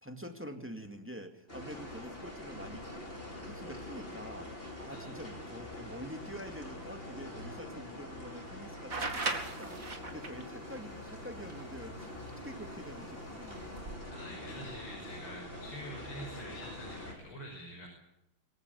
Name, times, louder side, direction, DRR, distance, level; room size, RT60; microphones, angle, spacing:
voice 1, 0.0-3.0 3.4-13.8, equal, 5° right, 6 dB, 2.1 m, -47 dB
sound 1, 1.5-17.1, left 1 dB, 25° left, 6.3 m, -45 dB
sound 2, 8.9-10.4 12.3-12.4 13.6-14.0, right 3 dB, 40° right, 2.8 m, -36 dB
voice 2, 14.1-17.9, equal, 75° left, 1 dB, 6.7 m, -46 dB
24.5 x 15.0 x 9.5 m, 0.87 s
omnidirectional pair, 2.3 m